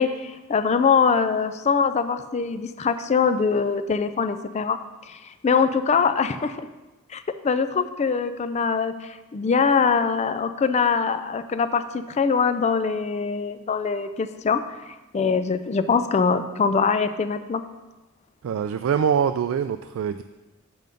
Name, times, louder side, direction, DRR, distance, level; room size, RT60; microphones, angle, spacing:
voice 1, 0.0-4.8 5.1-6.7 7.1-17.6, left 5 dB, 35° left, 10 dB, 0.4 m, -23 dB
voice 2, 18.4-20.2, right 7 dB, 70° right, 10 dB, 0.3 m, -24 dB
7.7 x 5.5 x 5.2 m, 1.1 s
head